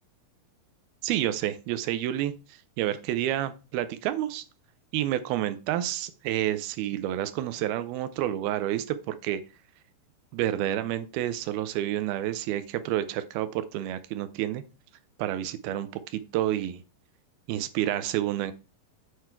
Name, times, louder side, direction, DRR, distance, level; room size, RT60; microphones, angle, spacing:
voice 1, 1.0-2.3 2.8-4.4 4.9-9.4 10.3-14.6 15.2-16.8 17.5-18.5, right 12 dB, 80° right, 13 dB, 2.3 m, -29 dB
8.5 x 4.7 x 4.4 m, 0.32 s
omnidirectional pair, 4.7 m